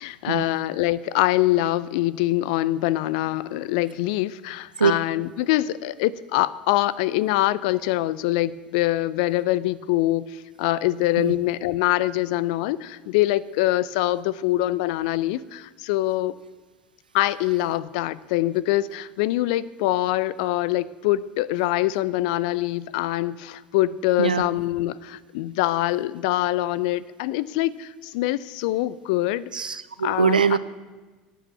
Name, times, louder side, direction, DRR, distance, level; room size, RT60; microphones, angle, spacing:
voice 1, 0.0-16.3 17.1-29.5 30.0-30.6, left 16 dB, 65° left, 18 dB, 0.5 m, -24 dB
voice 2, 29.5-30.6, right 6 dB, 85° right, 14 dB, 0.5 m, -22 dB
10.0 x 9.2 x 7.1 m, 1.3 s
figure-of-eight pair, 70°, 5 cm